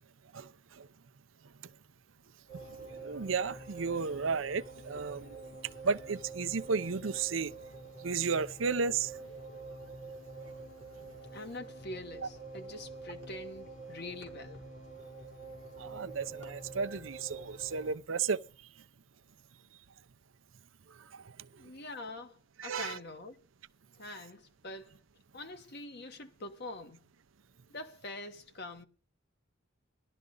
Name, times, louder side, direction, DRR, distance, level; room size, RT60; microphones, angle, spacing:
sound 1, 2.5-17.9, right 3 dB, 75° left, 7.0 m, -47 dB
voice 1, 2.8-5.4 5.8-7.5 8.0-9.1 15.8-18.4 21.1-21.2 22.6-23.0, right 5 dB, 85° right, 0.7 m, -33 dB
voice 2, 11.3-14.7 21.5-23.4 24.0-25.0 25.3-27.0 27.7-28.9, left 2 dB, 55° left, 1.5 m, -45 dB
19.0 x 12.0 x 3.9 m
head